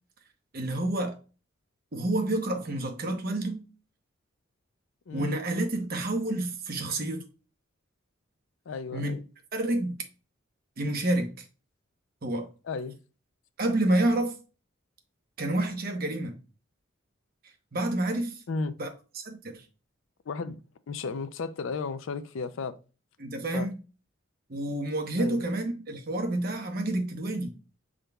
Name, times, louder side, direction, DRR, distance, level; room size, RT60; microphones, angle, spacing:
voice 1, 0.5-1.2 1.9-3.7 5.1-7.2 8.9-9.1 9.5-9.9 10.8-11.4 12.2-12.5 13.6-14.3 15.4-16.4 17.7-18.4 18.8-18.9 19.1-19.6 23.2-23.7 24.5-27.5, right 1 dB, 45° right, 0.9 m, -29 dB
voice 2, 5.1-5.4 8.7-9.2 12.7-13.0 18.5-18.7 20.3-20.6 20.9-22.7 23.5-23.7 25.2-25.4, left 4 dB, 70° left, 0.4 m, -34 dB
6.4 x 3.7 x 2.2 m
head